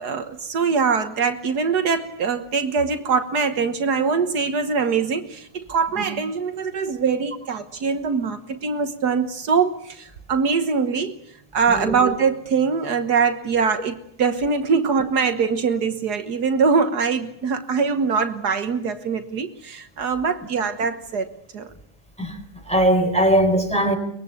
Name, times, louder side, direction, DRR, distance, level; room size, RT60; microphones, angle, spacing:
voice 1, 0.0-11.1 11.5-21.7, right 5 dB, 75° right, 1.8 m, -23 dB
voice 2, 22.7-24.0, right 1 dB, 5° left, 4.1 m, -19 dB
23.5 x 21.0 x 8.4 m
omnidirectional pair, 1.8 m